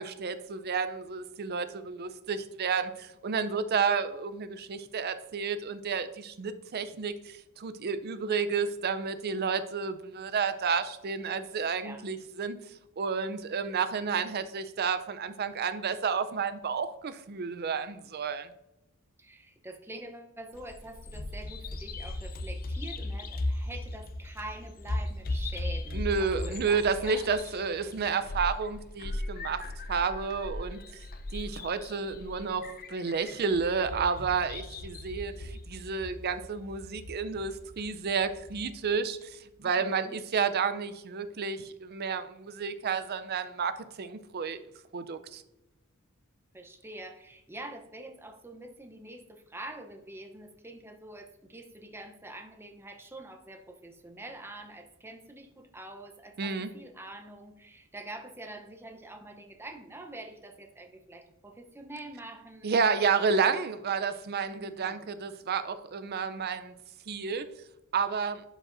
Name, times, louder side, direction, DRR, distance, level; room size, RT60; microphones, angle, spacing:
voice 1, 0.0-12.6 13.0-18.5 25.9-30.8 31.3-44.6 44.9-45.4 56.4-56.7 62.6-66.7 67.1-67.5 67.9-68.4, right 5 dB, 50° right, 11 dB, 0.5 m, -31 dB
voice 2, 19.2-27.3 39.6-40.2 46.5-63.0 64.5-65.1, right 2 dB, 10° right, 4 dB, 0.7 m, -45 dB
Bird vocalization bird call bird song, 20.5-38.7, left 2 dB, 45° left, 0.6 m, -38 dB
11.5 x 5.1 x 2.6 m, 0.95 s
head